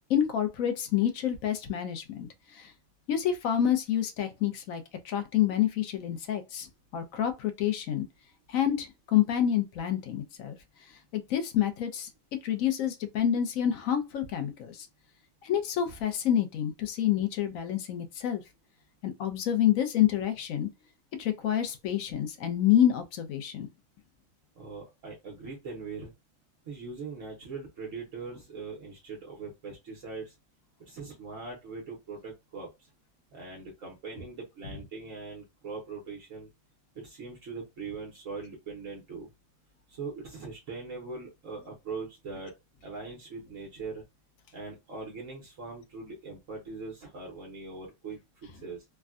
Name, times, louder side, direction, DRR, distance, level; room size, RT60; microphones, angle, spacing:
voice 1, 0.1-2.3 2.6-2.7 3.1-6.7 6.9-8.1 8.5-10.6 11.1-12.1 12.4-14.9 15.4-18.4 19.0-20.7 21.2-23.7, left 10 dB, 70° left, 1.1 m, -28 dB
voice 2, 24.6-26.1 26.6-30.3 30.8-32.9 33.3-36.5 36.9-39.3 39.9-42.5 42.8-44.0 44.5-48.8, right 4 dB, 65° right, 1.2 m, -41 dB
3.5 x 2.2 x 2.4 m
omnidirectional pair, 1.5 m